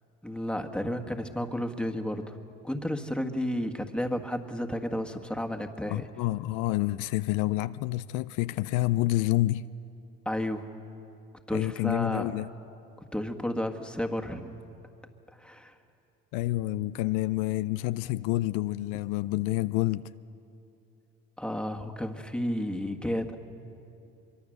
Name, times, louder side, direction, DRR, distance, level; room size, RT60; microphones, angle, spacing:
voice 1, 0.2-2.4 2.6-6.0 10.2-10.7 11.5-12.3 13.1-14.6 15.4-15.8 21.4-23.4, equal, 5° left, 1.7 m, -32 dB
voice 2, 5.9-9.7 11.5-12.5 16.3-20.1, left 17 dB, 75° left, 0.5 m, -28 dB
23.5 x 23.5 x 6.5 m
supercardioid pair, 80°, 30 cm